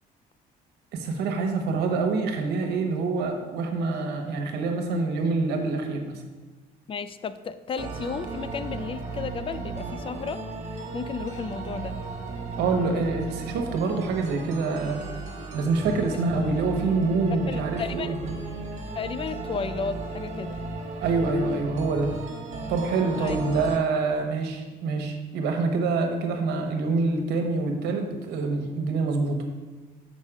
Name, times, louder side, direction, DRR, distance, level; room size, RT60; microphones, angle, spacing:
voice 1, 0.9-6.2 12.6-15.1 15.5-18.4 21.0-22.1 22.7-29.4, right 3 dB, 80° right, 4 dB, 1.1 m, -26 dB
voice 2, 6.9-10.4 10.9-12.0 16.1-16.2 17.5-18.2 19.0-20.6 23.2-23.4, left 5 dB, 30° left, 13 dB, 0.4 m, -33 dB
sound 1, 7.8-23.8, right 3 dB, 45° right, 1.4 m, -35 dB
6.5 x 5.1 x 4.9 m, 1.3 s
cardioid pair, 110°, 17 cm